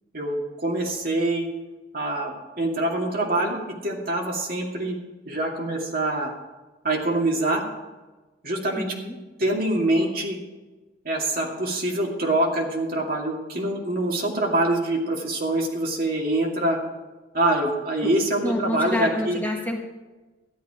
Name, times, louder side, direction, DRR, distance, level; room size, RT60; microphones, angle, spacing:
voice 1, 0.1-1.5 1.9-5.0 5.3-6.3 6.8-7.6 8.4-8.9 9.4-10.4 11.0-16.8 17.3-19.4, right 1 dB, 50° right, 0 dB, 2.3 m, -25 dB
voice 2, 8.7-9.2 18.0-19.8, left 1 dB, 10° left, 0 dB, 1.4 m, -29 dB
13.5 x 11.0 x 4.9 m, 1.2 s
head